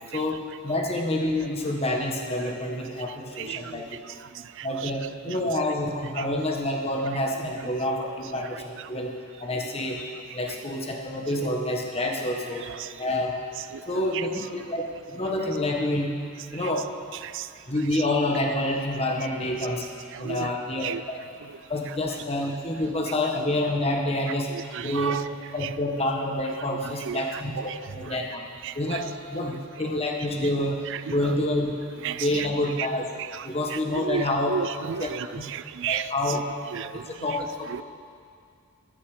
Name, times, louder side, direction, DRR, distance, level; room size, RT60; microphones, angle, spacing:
voice 1, 0.1-4.0 4.6-9.1 9.4-12.7 13.0-13.3 13.9-16.1 16.5-16.9 17.7-19.8 20.2-21.2 21.7-25.2 25.5-28.4 28.7-31.7 32.1-33.1 33.4-34.6 35.0-35.1 35.3-35.4 35.9-36.4 37.1-37.8, left 1 dB, 25° left, 1 dB, 1.2 m, -28 dB
voice 2, 3.4-3.8 4.6-4.9 5.3-5.4 6.2-6.3 8.8-9.0 10.5-10.6 12.7-12.9 13.7-13.8 14.1-14.3 16.5-16.7 17.2-17.5 20.1-20.5 20.8-21.0 21.5-21.6 24.5-25.3 25.6-25.7 26.7-27.8 28.1-28.2 28.6-29.0 29.4-29.5 30.9-31.2 32.0-32.5 32.8-32.9 33.2-36.4 36.7-37.1 37.7-37.8, right 8 dB, 55° right, 14 dB, 0.4 m, -34 dB
14.5 x 9.9 x 4.9 m, 2.3 s
head